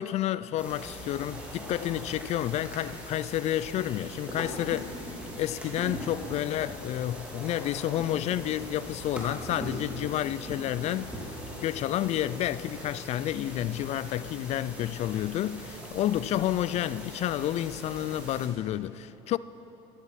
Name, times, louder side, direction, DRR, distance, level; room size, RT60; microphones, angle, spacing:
voice 1, 0.0-5.0 5.4-19.4, left 12 dB, 50° left, 0.4 m, -30 dB
sound 1, 0.6-18.5, equal, 10° right, 3.3 m, -41 dB
13.5 x 11.0 x 5.9 m
supercardioid pair, 90°, 14 cm